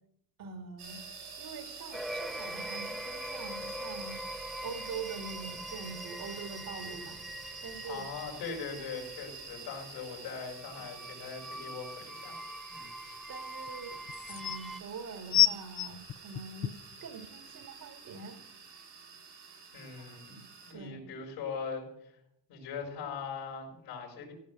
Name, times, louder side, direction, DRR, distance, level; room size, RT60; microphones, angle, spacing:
voice 1, 0.4-1.0 1.4-4.2 4.6-7.2 7.6-8.1 13.3-14.0 14.3-18.4 20.0-20.4 20.7-21.0, right 5 dB, 55° right, 5 dB, 2.2 m, -44 dB
sound 1, 0.8-20.7, right 5 dB, 75° right, 5.7 m, -47 dB
sound 2, 1.9-14.8, equal, ahead, 0.8 m, -43 dB
voice 2, 7.9-12.4 12.7-12.9 19.7-20.3 20.6-22.1 22.5-24.3, left 5 dB, 85° left, 0 dB, 4.8 m, -41 dB
sound 3, 12.0-12.1 13.7-13.8 14.1-14.6 15.3-16.9 17.6-17.7, left 12 dB, 40° left, 0.6 m, -27 dB
16.0 x 5.3 x 7.5 m, 0.79 s
supercardioid pair, 85°, 41 cm